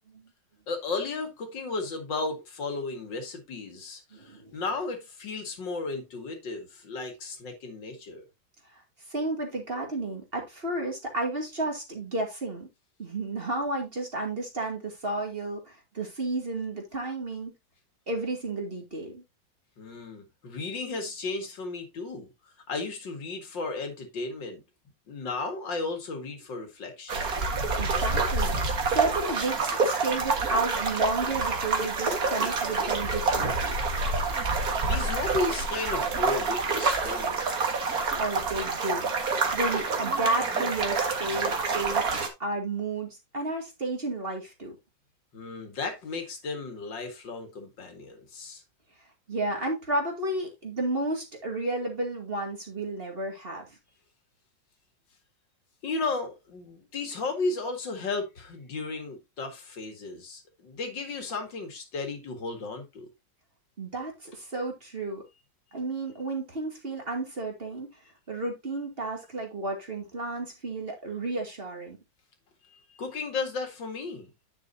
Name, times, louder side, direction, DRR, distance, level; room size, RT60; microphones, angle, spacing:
voice 1, 0.7-8.2 19.8-22.3 22.7-24.6 25.1-27.3 34.8-37.5 45.3-48.6 55.8-63.1 72.7-74.3, left 3 dB, 85° left, 2.6 m, -34 dB
voice 2, 4.1-4.5 9.1-12.7 13.0-17.5 18.1-19.2 27.8-33.7 38.1-42.1 42.4-44.8 49.3-53.8 63.8-65.2 65.7-67.9 68.3-72.0, right 2 dB, 30° right, 2.4 m, -32 dB
sound 1, 27.1-42.3, right 4 dB, 55° right, 2.1 m, -27 dB
9.9 x 6.7 x 2.7 m
omnidirectional pair, 1.9 m